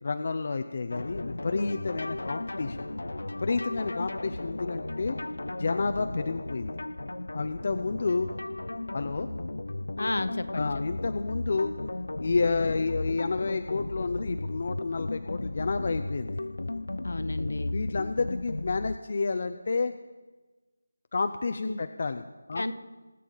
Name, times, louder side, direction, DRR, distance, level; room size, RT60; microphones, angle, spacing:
voice 1, 0.0-2.9 3.4-5.2 5.6-6.8 7.3-8.3 8.9-9.3 10.5-11.7 12.2-16.5 17.7-19.9 21.1-22.7, left 4 dB, 35° left, 8 dB, 0.5 m, -30 dB
sound 1, 0.9-19.0, left 2 dB, 90° left, 0.5 m, -35 dB
voice 2, 10.0-10.7 17.0-17.7 21.6-21.8 22.6-22.7, left 2 dB, 65° left, 11 dB, 1.0 m, -31 dB
23.5 x 8.3 x 3.9 m, 1.2 s
figure-of-eight pair, 175°, 0 cm